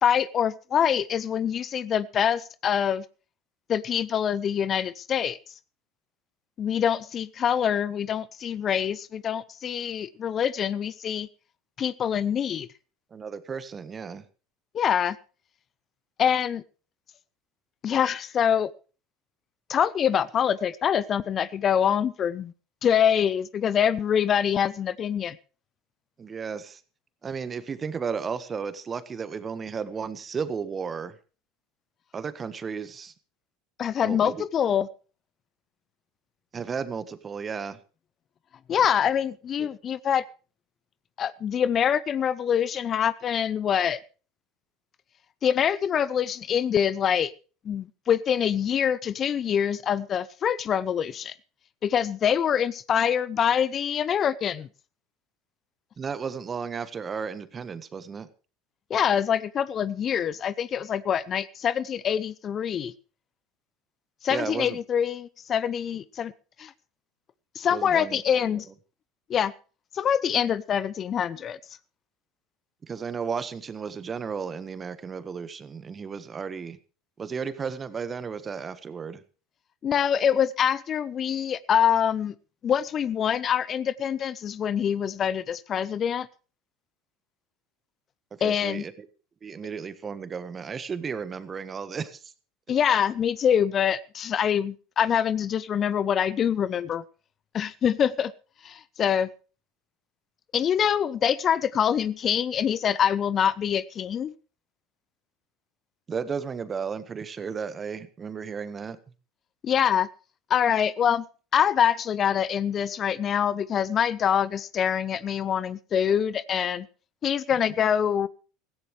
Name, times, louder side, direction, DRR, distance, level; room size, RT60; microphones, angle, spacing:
voice 1, 0.0-3.0 3.7-5.4 6.6-11.3 11.8-12.7 14.7-15.2 16.2-16.6 17.8-18.7 19.7-22.5 22.8-25.4 33.8-34.9 38.7-40.2 41.2-44.0 45.4-47.3 47.7-51.3 51.8-54.7 58.9-62.9 64.2-66.3 66.6-66.7 67.6-68.7 69.3-69.5 69.9-71.6 79.8-82.3 82.6-86.3 88.4-88.8 92.7-97.0 97.5-98.3 98.6-99.3 100.5-104.3 109.6-110.1 110.5-111.2 111.5-116.9 117.2-118.3, left 8 dB, 40° left, 19 dB, 0.6 m, -25 dB
voice 2, 13.1-14.2 26.2-26.8 27.2-31.1 32.1-33.1 34.0-34.5 36.5-37.8 39.6-39.7 56.0-58.3 64.3-64.8 67.7-68.6 72.8-76.8 77.2-79.2 88.4-89.1 89.4-92.3 106.1-109.0, right 6 dB, 30° right, 13 dB, 1.4 m, -34 dB
17.0 x 15.0 x 3.3 m, 0.35 s
hypercardioid pair, 80°, 0 cm